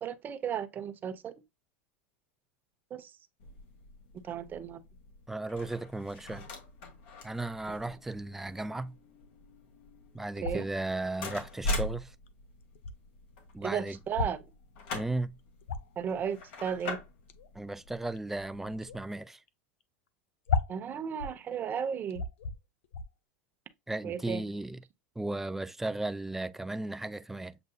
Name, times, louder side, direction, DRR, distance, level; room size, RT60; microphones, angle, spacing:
voice 1, 0.0-1.3 2.9-3.1 4.2-4.8 10.4-10.6 13.6-14.4 16.0-17.0 20.7-22.2 24.0-24.4, right 8 dB, 30° right, 0.7 m, -34 dB
sound 1, 3.4-18.9, left 1 dB, 65° left, 1.8 m, -42 dB
voice 2, 5.3-6.5 7.2-8.9 10.1-12.1 13.5-14.0 14.9-15.3 17.5-19.4 23.9-24.8 25.2-27.6, right 2 dB, 5° right, 0.3 m, -35 dB
sound 2, 10.4-10.8 11.9-12.0 12.3-12.4 12.6-13.0 14.1-14.5 15.0-15.1 15.4-16.0 17.3-17.5 18.2-18.5 18.8-19.1 19.5-19.6 19.8-19.9 20.5-21.4 21.8-21.9 22.1-22.6 22.8-23.1, left 5 dB, 90° left, 0.6 m, -34 dB
7.7 x 2.6 x 2.3 m
supercardioid pair, 130°, 7 cm